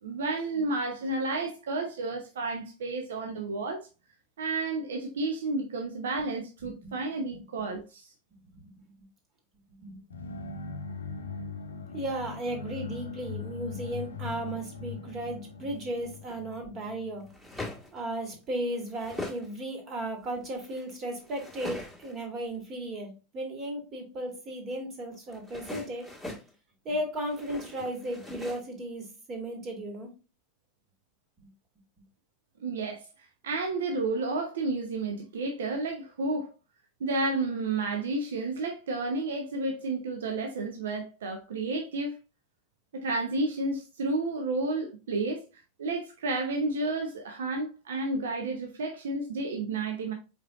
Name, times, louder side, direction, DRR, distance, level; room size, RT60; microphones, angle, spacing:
voice 1, 0.0-3.9 4.4-8.1 32.6-33.1 33.4-36.5 37.0-42.2 42.9-45.4 45.8-50.1, right 2 dB, 65° right, 0.7 m, -31 dB
voice 2, 6.6-6.9 7.3-7.4 8.5-8.9 9.7-10.0 11.8-17.3 17.9-26.1 26.9-30.1, right 1 dB, 35° right, 1.9 m, -35 dB
sound 1, 10.1-17.9, left 5 dB, 75° left, 0.6 m, -41 dB
sound 2, 15.8-16.4 17.2-18.0 18.5-19.5 19.9-22.2 25.3-26.5 27.1-28.6, left 2 dB, 5° right, 1.6 m, -41 dB
4.9 x 4.3 x 2.4 m
figure-of-eight pair, 85°, 0 cm